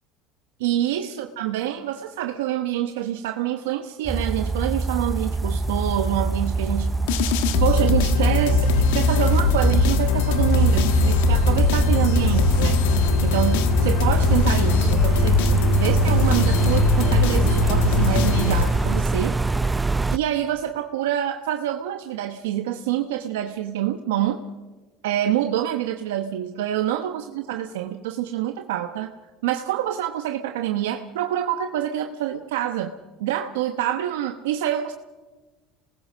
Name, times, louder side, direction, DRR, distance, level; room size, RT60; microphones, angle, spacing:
voice 1, 0.6-6.9 7.6-12.8 13.2-19.4 20.1-24.4 25.0-29.1 29.4-32.9 33.2-34.9, right 12 dB, 90° right, 6 dB, 1.0 m, -26 dB
sound 1, 4.1-20.2, right 3 dB, 15° right, 0.6 m, -23 dB
sound 2, 7.1-19.2, left 7 dB, 85° left, 1.8 m, -22 dB
27.0 x 19.5 x 6.3 m, 1.2 s
supercardioid pair, 95°, 0 cm